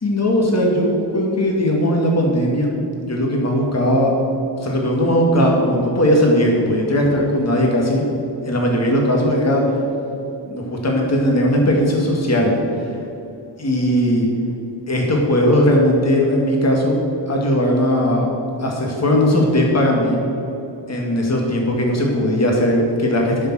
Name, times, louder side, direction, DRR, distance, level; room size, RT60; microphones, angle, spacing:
voice 1, 0.0-2.7 3.0-4.1 4.6-8.0 8.4-9.8 10.5-12.5 12.8-12.9 13.6-14.3 14.9-17.0 17.3-18.3 18.6-20.2 20.9-23.5, equal, 35° left, -1 dB, 2.3 m, -18 dB
10.5 x 6.9 x 7.8 m, 2.7 s
wide cardioid pair, 95°, 43 cm